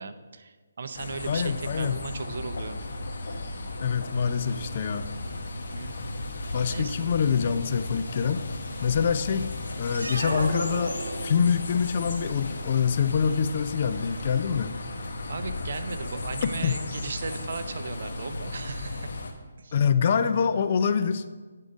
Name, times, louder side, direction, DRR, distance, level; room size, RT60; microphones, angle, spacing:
voice 1, 0.0-2.8 5.6-5.9 6.5-6.9 15.3-19.2 19.6-19.8, right 4 dB, 55° right, 9 dB, 0.6 m, -37 dB
sound 1, 0.9-19.3, left 2 dB, 60° left, 1.1 m, -35 dB
voice 2, 1.3-2.0 3.8-5.1 6.5-8.4 8.8-9.5 9.8-14.7 16.6-16.8 19.7-21.2, left 6 dB, 40° left, 10 dB, 0.4 m, -25 dB
sound 2, 9.9-11.7, right 2 dB, 85° right, 1.1 m, -33 dB
9.1 x 3.7 x 5.2 m, 1.4 s
hypercardioid pair, 155°, 0 cm